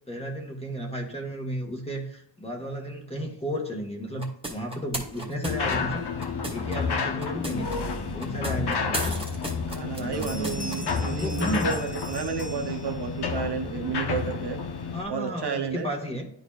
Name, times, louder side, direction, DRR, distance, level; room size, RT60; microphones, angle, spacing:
voice 1, 0.1-6.1 6.5-7.7 8.1-9.5 10.0-11.8 14.9-16.3, equal, 15° left, 0 dB, 1.5 m, -33 dB
sound 1, 4.2-6.8 7.2-7.8 8.2-10.8, right 2 dB, 15° right, 1.4 m, -35 dB
sound 2, 5.5-15.0, left 5 dB, 65° left, 0.9 m, -30 dB
voice 2, 9.7-14.6 15.1-15.9, right 5 dB, 65° right, 4 dB, 1.0 m, -31 dB
sound 3, 10.1-13.3, left 1 dB, 35° left, 0.9 m, -42 dB
11.5 x 4.0 x 2.4 m, 0.71 s
wide cardioid pair, 160°, 43 cm